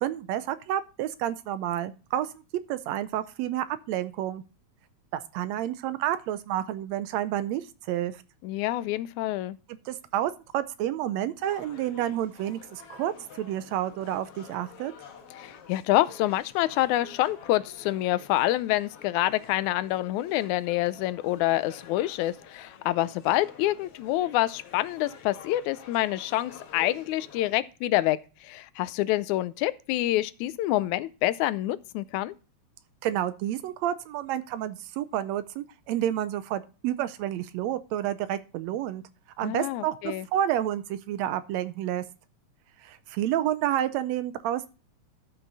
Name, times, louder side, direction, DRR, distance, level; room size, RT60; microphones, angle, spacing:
voice 1, 0.0-2.3 2.7-4.4 5.1-8.1 9.8-14.9 33.0-39.0 39.4-42.0 42.8-44.7, right 12 dB, 75° right, 1.7 m, -30 dB
voice 2, 8.4-9.6 15.4-32.3 39.4-40.3, left 15 dB, 85° left, 2.0 m, -27 dB
sound 1, 11.4-27.5, left 6 dB, 60° left, 2.0 m, -49 dB
12.5 x 5.8 x 4.0 m
omnidirectional pair, 3.4 m